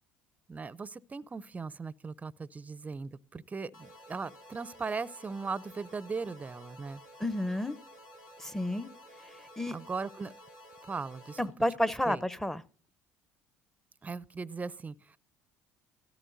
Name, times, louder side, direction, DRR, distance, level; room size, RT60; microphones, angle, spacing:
voice 1, 0.5-7.0 9.7-10.3 10.9-11.4 12.1-12.2 14.0-15.2, right 4 dB, 25° right, 0.6 m, -38 dB
sound 1, 3.7-11.5, equal, 75° left, 2.9 m, -53 dB
voice 2, 7.2-7.8 8.4-8.9 9.6-9.8 11.4-12.6, left 1 dB, 5° left, 0.8 m, -30 dB
17.0 x 13.5 x 2.6 m
hypercardioid pair, 65°, 6 cm